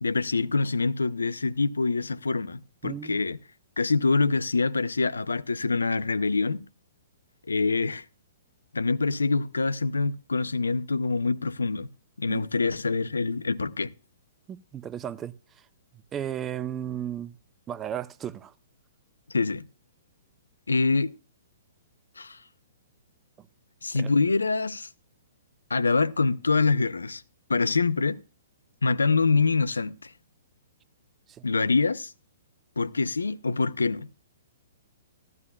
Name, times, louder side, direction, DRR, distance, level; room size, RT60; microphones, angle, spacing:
voice 1, 0.0-3.4 3.8-6.6 7.5-8.0 8.7-11.9 12.2-13.9 19.3-19.7 20.7-21.1 22.2-22.4 23.8-24.9 25.7-27.2 27.5-28.2 28.8-30.1 31.4-32.1 32.8-34.1, left 4 dB, 85° left, 0.6 m, -25 dB
voice 2, 2.8-3.2 12.3-12.4 14.5-15.7 16.1-17.4 17.7-18.5 23.4-23.5 23.9-24.1 31.3-31.4, right 10 dB, 20° right, 0.5 m, -35 dB
14.0 x 12.0 x 2.3 m
figure-of-eight pair, 120°, 0 cm